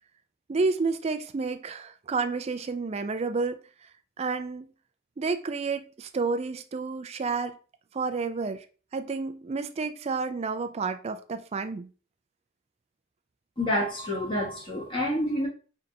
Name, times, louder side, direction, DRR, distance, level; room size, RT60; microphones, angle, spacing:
voice 1, 0.5-3.6 4.2-4.7 5.2-7.6 7.9-8.7 8.9-11.9, right 4 dB, 30° right, 0.3 m, -30 dB
voice 2, 13.6-15.5, left 1 dB, 25° left, 1.5 m, -28 dB
3.9 x 3.5 x 2.7 m
head